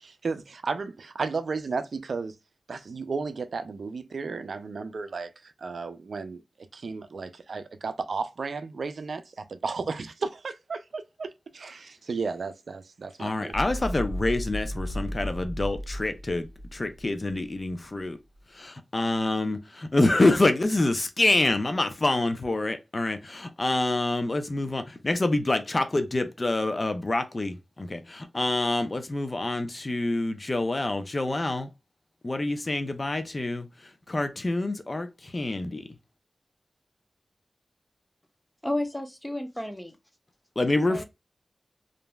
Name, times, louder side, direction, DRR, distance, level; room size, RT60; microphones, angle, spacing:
voice 1, 0.0-2.3 2.7-5.3 5.6-6.4 6.7-13.6, right 4 dB, 80° right, 0.4 m, -33 dB
voice 2, 13.2-16.5 16.7-18.2 18.5-31.7 32.2-33.7 34.1-35.9 40.6-41.0, left 2 dB, 40° left, 0.6 m, -26 dB
sound 1, 13.5-17.7, equal, 30° right, 0.9 m, -34 dB
voice 3, 38.6-40.0 40.9-41.0, left 1 dB, 5° left, 0.7 m, -32 dB
3.1 x 2.6 x 2.2 m
cardioid pair, 55°, 0 cm